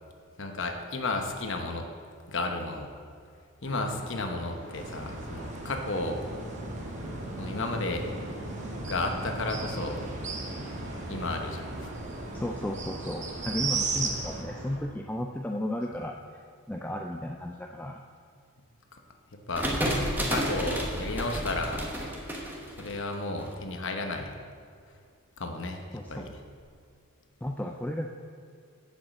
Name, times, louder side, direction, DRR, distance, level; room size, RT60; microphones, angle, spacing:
voice 1, 0.4-1.9 2.3-2.9 3.6-6.2 7.4-8.1 8.9-10.1 11.1-11.9 19.5-19.7 20.3-21.8 22.8-24.3 25.4-26.3, left 2 dB, 55° left, 4 dB, 1.1 m, -33 dB
sound 1, 3.6-14.8, right 1 dB, 55° right, 2.3 m, -41 dB
sound 2, 4.7-14.4, right 3 dB, 35° right, 1.0 m, -37 dB
voice 2, 12.3-16.2 16.7-18.0 25.9-26.4 27.4-28.1, left 1 dB, 5° left, 2 dB, 0.3 m, -34 dB
sound 3, 19.5-23.4, equal, 10° right, 1.3 m, -31 dB
7.8 x 7.2 x 7.7 m, 2.3 s
head